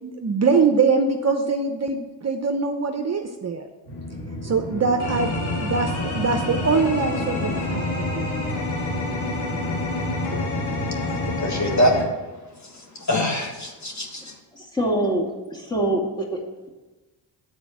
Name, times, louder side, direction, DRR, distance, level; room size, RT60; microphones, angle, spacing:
voice 1, 0.0-3.6 4.4-8.3, right 4 dB, 35° right, 4 dB, 0.7 m, -23 dB
sound 1, 3.9-12.0, left 2 dB, 90° left, 2.0 m, -27 dB
voice 2, 11.0-11.9 12.7-14.3, equal, 40° left, 1 dB, 1.6 m, -24 dB
voice 3, 14.5-16.4, right 1 dB, 10° left, -3 dB, 2.3 m, -25 dB
8.1 x 4.3 x 7.0 m, 1.2 s
cardioid pair, 75°, 45 cm